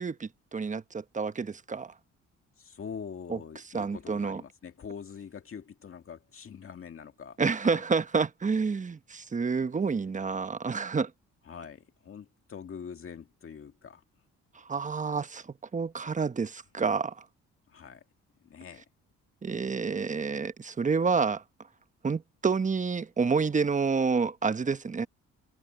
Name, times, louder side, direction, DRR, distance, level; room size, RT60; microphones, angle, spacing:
voice 1, 0.0-1.9 3.3-3.4 3.7-4.4 7.4-11.1 14.7-15.4 15.7-17.2 19.4-21.4 22.0-25.1, right 5 dB, 25° right, 1.1 m, -29 dB
voice 2, 2.6-7.4 7.6-7.8 11.4-14.0 17.7-18.0 18.4-18.8, left 7 dB, 45° left, 2.1 m, -44 dB
cardioid pair, 90°, 30 cm